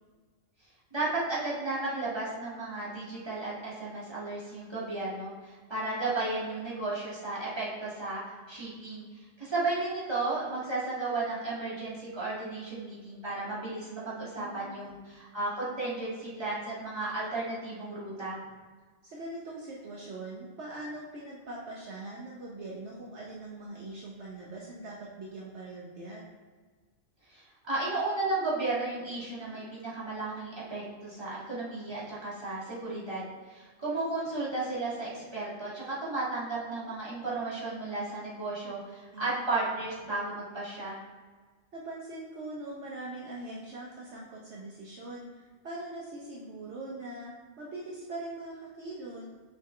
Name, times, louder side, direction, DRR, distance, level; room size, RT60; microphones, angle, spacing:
voice 1, 0.9-9.1 9.4-18.4 27.3-33.2 33.5-41.0, right 2 dB, 20° right, -8 dB, 1.8 m, -34 dB
voice 2, 14.1-14.8 19.0-26.3 39.1-39.5 41.7-49.2, right 2 dB, 65° right, -4 dB, 1.1 m, -42 dB
5.8 x 5.3 x 3.1 m, 1.4 s
omnidirectional pair, 1.3 m